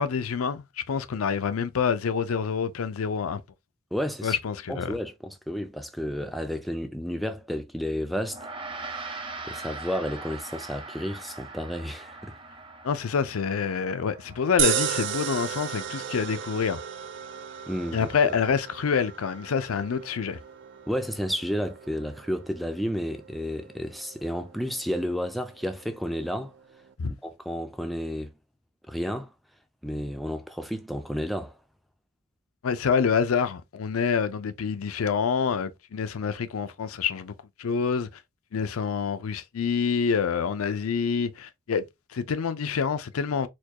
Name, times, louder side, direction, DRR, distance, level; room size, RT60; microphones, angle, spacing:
voice 1, 0.0-3.4 4.2-4.9 12.8-16.8 17.9-20.4 27.0-27.1 32.6-37.3 37.6-38.1 38.5-41.8 42.1-43.5, left 6 dB, 85° left, 0.5 m, -27 dB
voice 2, 3.9-4.4 4.7-8.5 8.8-9.1 9.5-12.3 17.7-18.3 20.9-26.5 27.1-28.3 28.9-29.3 29.8-31.6, equal, ahead, 0.4 m, -31 dB
Gong, 8.3-17.9, right 3 dB, 25° right, 0.8 m, -42 dB
sound 1, 14.6-26.9, right 9 dB, 60° right, 0.5 m, -35 dB
4.3 x 2.3 x 2.8 m
head